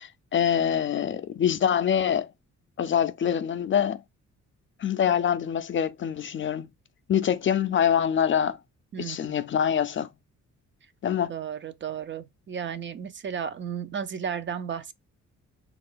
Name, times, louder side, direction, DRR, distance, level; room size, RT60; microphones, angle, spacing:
voice 1, 0.0-2.3 2.8-4.0 4.8-6.7 7.1-8.6 9.0-10.1 11.0-11.3, left 8 dB, 40° left, 0.4 m, -25 dB
voice 2, 11.3-14.9, right 7 dB, 40° right, 0.5 m, -33 dB
3.2 x 2.5 x 3.6 m
cardioid pair, 90°, 30 cm